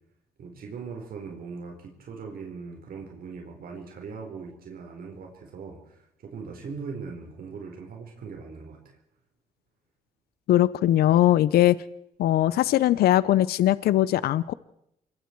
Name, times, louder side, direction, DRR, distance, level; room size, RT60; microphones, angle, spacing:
voice 1, 0.4-9.0, right 5 dB, 70° right, 1 dB, 4.5 m, -40 dB
voice 2, 10.5-11.8 12.2-14.5, left 13 dB, 85° left, 18 dB, 0.7 m, -20 dB
26.5 x 22.0 x 4.7 m, 0.77 s
cardioid pair, 95°, 16 cm